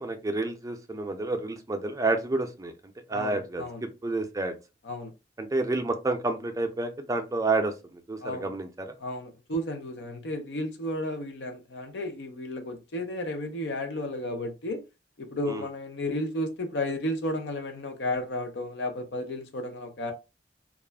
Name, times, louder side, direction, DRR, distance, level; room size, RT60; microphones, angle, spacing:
voice 1, 0.0-2.7 3.1-4.5 5.4-7.7 8.1-8.7 15.5-15.6, right 2 dB, 20° right, 0.4 m, -29 dB
voice 2, 3.1-3.8 4.8-5.1 8.2-8.5 9.0-14.8 15.2-20.1, left 1 dB, 80° left, 0.6 m, -33 dB
2.4 x 2.1 x 3.3 m
head